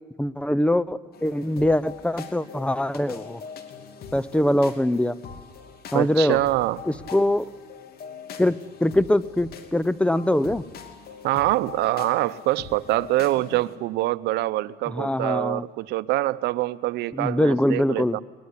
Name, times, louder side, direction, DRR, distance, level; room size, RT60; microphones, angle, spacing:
voice 1, 0.2-3.4 4.1-5.2 5.9-6.4 7.1-7.5 8.4-10.6 14.9-15.6 17.1-18.2, left 1 dB, 5° left, 19 dB, 0.7 m, -23 dB
sound 1, 1.1-13.8, left 6 dB, 65° left, 2.8 m, -42 dB
voice 2, 5.9-6.8 11.2-18.2, right 17 dB, 85° right, 16 dB, 0.8 m, -25 dB
23.0 x 20.0 x 9.8 m, 1.4 s
cardioid pair, 110°, 17 cm